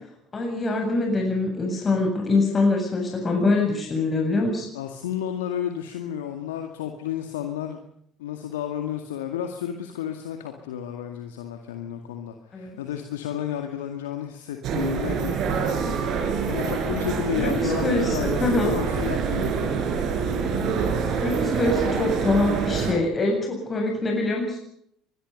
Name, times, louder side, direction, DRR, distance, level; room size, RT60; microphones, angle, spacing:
voice 1, 0.3-4.7 12.5-12.8 17.4-18.7 21.2-24.6, left 2 dB, 30° left, 1 dB, 7.5 m, -24 dB
voice 2, 4.7-7.8 8.2-19.7, left 10 dB, 75° left, 5 dB, 2.1 m, -32 dB
sound 1, 14.6-22.9, right 5 dB, 55° right, 5.2 m, -26 dB
24.5 x 22.0 x 5.4 m, 0.71 s
figure-of-eight pair, 60°, 0 cm